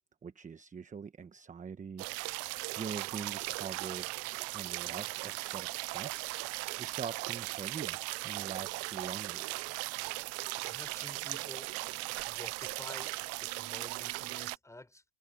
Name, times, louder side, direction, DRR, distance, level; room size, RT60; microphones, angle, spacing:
voice 1, 0.2-4.1 4.5-6.5 6.8-9.4, right 6 dB, 15° right, 1.1 m, -44 dB
sound 1, 2.0-14.6, right 24 dB, 35° right, 0.4 m, -38 dB
voice 2, 10.3-11.7 12.3-15.0, left 2 dB, 5° left, 4.3 m, -51 dB
hypercardioid pair, 105°, 46 cm